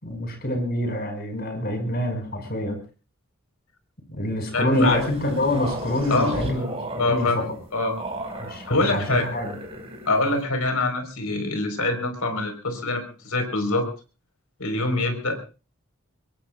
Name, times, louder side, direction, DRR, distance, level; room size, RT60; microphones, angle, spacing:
voice 1, 0.0-2.8 4.1-6.7 7.0-7.3 8.4-9.6, left 1 dB, 45° left, 5 dB, 5.4 m, -26 dB
voice 2, 4.5-5.0 6.1-6.3 7.0-7.4 7.7-7.9 8.7-9.2 10.1-13.9 14.6-15.4, left 2 dB, 85° left, 6 dB, 4.4 m, -24 dB
sound 1, 4.7-10.4, right 1 dB, 25° right, 5.2 m, -35 dB
24.0 x 22.0 x 2.4 m, 0.35 s
head